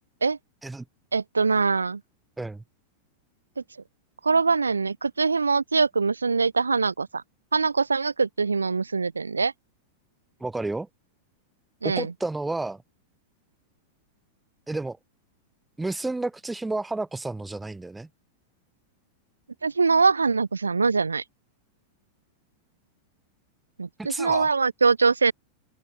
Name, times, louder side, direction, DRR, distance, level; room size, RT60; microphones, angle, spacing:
voice 1, 1.1-2.0 4.2-7.2 7.5-9.5 11.8-12.1 19.6-21.2 23.8-25.3, right 4 dB, 75° right, 0.3 m, -23 dB
voice 2, 10.4-10.9 11.8-12.8 14.7-15.0 15.8-18.1 24.0-24.5, right 2 dB, 10° right, 3.4 m, -31 dB
open air
figure-of-eight pair, 90°, 0 cm